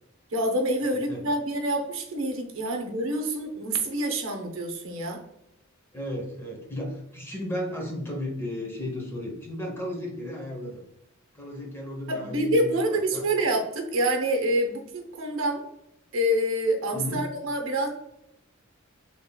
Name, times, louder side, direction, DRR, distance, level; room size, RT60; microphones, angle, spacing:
voice 1, 0.3-5.2 12.1-15.6 16.1-17.9, right 1 dB, 65° right, 3 dB, 0.7 m, -27 dB
voice 2, 0.8-1.3 5.9-10.8 11.3-13.3 16.9-17.3, left 1 dB, 10° left, 0 dB, 0.8 m, -34 dB
3.6 x 3.4 x 2.2 m, 0.80 s
head